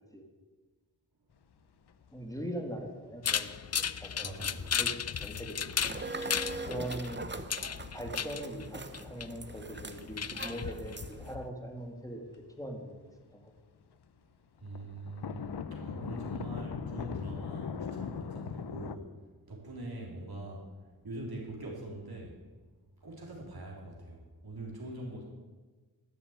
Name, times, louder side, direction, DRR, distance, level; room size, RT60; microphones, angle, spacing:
sound 1, 1.9-2.1 2.4-2.5 2.8-2.9 3.5-3.9 4.2-4.4 4.9-5.7 6.2-6.3 6.9-8.8 9.3-9.6 10.2-10.3 10.8-10.9 11.1-12.7 13.0-13.1 13.4-13.5 13.8-13.9 14.2-14.3 14.7-19.0, left 6 dB, 85° left, 0.7 m, -40 dB
voice 1, 2.1-3.6 4.0-4.4 4.7-4.9 5.2-5.7 6.7-7.2 7.9-12.2 12.6-13.0 13.4-13.5, right 1 dB, 10° left, 2 dB, 2.1 m, -41 dB
sound 2, 3.2-11.5, left 7 dB, 40° left, 0.5 m, -36 dB
voice 2, 4.2-4.8 6.5-6.7 14.6-19.1 19.5-20.7 21.0-22.4 23.0-25.2, right 1 dB, 70° right, -3 dB, 3.7 m, -43 dB
sound 3, 5.8-11.4, right 3 dB, 30° right, 0.8 m, -42 dB
12.5 x 6.9 x 8.9 m, 1.3 s
wide cardioid pair, 60°, 39 cm